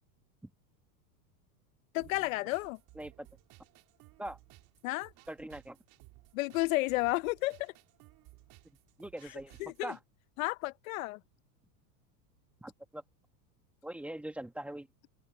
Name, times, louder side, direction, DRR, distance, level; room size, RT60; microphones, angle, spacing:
voice 1, 1.9-2.8 4.8-5.1 6.3-7.7 9.6-9.9 10.4-11.2, left 20 dB, 60° left, 0.7 m, -32 dB
sound 1, 2.0-10.0, right 20 dB, 40° right, 3.2 m, -59 dB
voice 2, 2.9-3.3 4.2-4.4 5.3-5.8 9.0-10.0 12.6-13.0 13.8-14.9, right 1 dB, 5° right, 1.2 m, -42 dB
open air
supercardioid pair, 155°, 46 cm